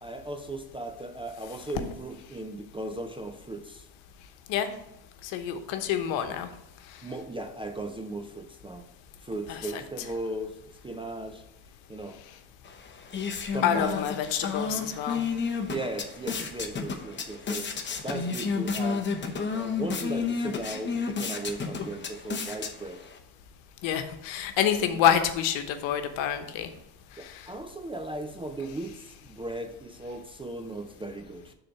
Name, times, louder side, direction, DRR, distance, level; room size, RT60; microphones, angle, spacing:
voice 1, 0.0-3.9 7.0-8.9 9.2-11.4 11.9-12.2 13.5-14.0 15.7-17.7 18.0-19.1 19.5-23.0 27.2-31.5, right 2 dB, 15° right, 6 dB, 0.3 m, -37 dB
voice 2, 5.2-6.5 9.5-10.1 13.6-15.2 23.8-26.7 27.2-27.3, left 9 dB, 75° left, 8 dB, 1.0 m, -27 dB
sound 1, 12.6-23.2, left 5 dB, 25° left, 0.9 m, -32 dB
6.7 x 3.9 x 5.8 m, 0.88 s
cardioid pair, 115°, 46 cm